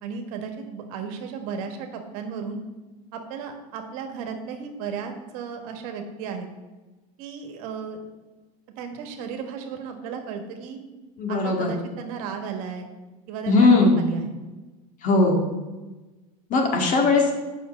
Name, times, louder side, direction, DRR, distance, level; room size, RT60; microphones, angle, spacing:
voice 1, 0.0-2.6 3.1-6.5 7.2-8.0 8.8-10.8 11.3-12.9 13.3-14.3, right 6 dB, 65° right, 5 dB, 1.5 m, -34 dB
voice 2, 11.2-11.7 13.5-14.0 15.0-15.4 16.5-17.3, left 3 dB, 40° left, 1 dB, 2.0 m, -19 dB
7.1 x 5.7 x 6.3 m, 1.2 s
supercardioid pair, 115°, 19 cm